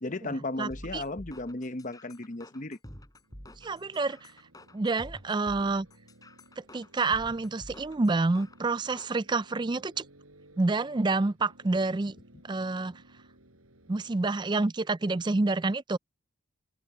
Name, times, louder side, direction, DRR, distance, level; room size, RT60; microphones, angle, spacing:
voice 1, 0.0-2.8, left 2 dB, 35° left, 0.9 m, -35 dB
voice 2, 0.6-1.0 3.6-4.3 4.7-5.9 6.7-10.0 10.6-12.1 12.4-12.9 13.9-16.0, right 3 dB, 20° right, 0.4 m, -28 dB
sound 1, 0.7-9.2, left 1 dB, 15° left, 4.6 m, -49 dB
sound 2, 3.2-14.2, right 1 dB, 80° right, 6.6 m, -58 dB
open air
head